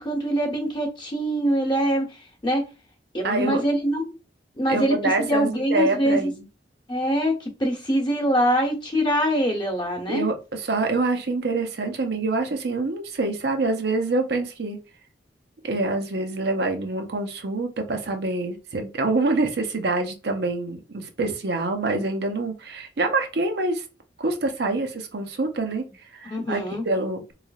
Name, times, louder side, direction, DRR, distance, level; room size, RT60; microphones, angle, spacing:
voice 1, 0.0-2.1 2.4-2.6 3.1-4.2 4.6-6.3 6.9-10.3 26.3-26.8, equal, 25° left, 1 dB, 0.9 m, -23 dB
voice 2, 3.2-3.6 4.7-6.4 10.1-14.8 15.6-23.8 24.2-27.3, right 3 dB, 65° right, 5 dB, 0.6 m, -26 dB
3.7 x 3.2 x 2.3 m, 0.30 s
head